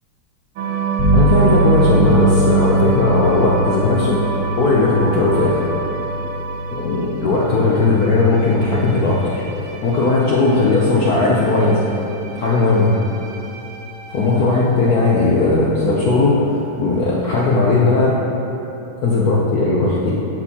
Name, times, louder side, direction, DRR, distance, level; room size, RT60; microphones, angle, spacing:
sound 1, 0.6-15.0, right 6 dB, 85° right, 1.5 m, -27 dB
sound 2, 1.0-11.5, right 1 dB, 50° right, 0.6 m, -22 dB
voice 1, 1.1-4.2 4.6-5.6 6.7-9.2 9.8-11.8 12.3-12.9 14.1-18.2 19.0-20.1, left 3 dB, 65° left, -5 dB, 0.9 m, -17 dB
12.0 x 4.5 x 2.8 m, 2.9 s
omnidirectional pair, 2.3 m